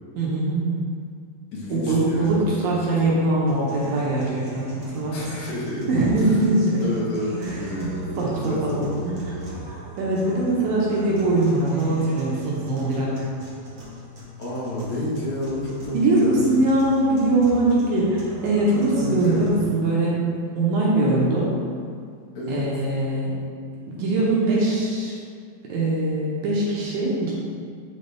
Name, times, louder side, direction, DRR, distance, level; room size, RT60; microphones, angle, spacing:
voice 1, 0.2-0.9 1.7-5.2 5.9-6.8 7.3-7.5 8.1-9.3 9.7-13.3 15.9-20.3 20.5-21.5 22.5-23.3 23.9-25.1 25.7-27.3, right 2 dB, 80° right, -5 dB, 2.8 m, -22 dB
voice 2, 1.5-3.1 5.1-5.8 6.2-6.4 6.8-9.7 14.4-16.6 18.7-19.6 22.3-22.6, left 1 dB, 60° left, -6 dB, 2.4 m, -31 dB
sound 1, 3.5-19.5, right 2 dB, 50° right, 1.3 m, -40 dB
9.2 x 4.1 x 3.5 m, 2.2 s
omnidirectional pair, 4.1 m